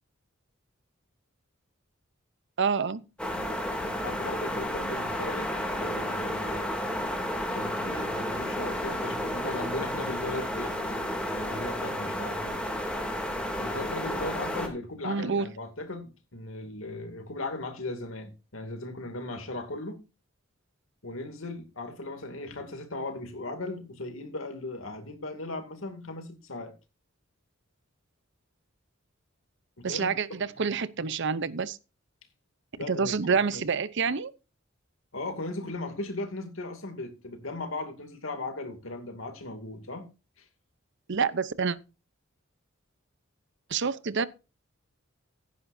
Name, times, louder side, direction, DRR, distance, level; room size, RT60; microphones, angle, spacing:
voice 1, 2.6-3.0 15.0-15.5 29.8-31.8 32.9-34.3 41.1-41.8 43.7-44.2, right 5 dB, 60° right, 0.7 m, -27 dB
sound 1, 3.2-14.7, left 1 dB, 5° left, 2.7 m, -32 dB
voice 2, 4.0-5.5 5.8-6.7 7.5-12.5 13.6-20.0 21.0-26.7 29.8-30.4 32.8-33.1 33.5-33.6 35.1-40.1 40.4-40.5, left 2 dB, 80° left, 2.5 m, -37 dB
16.0 x 10.0 x 2.7 m
head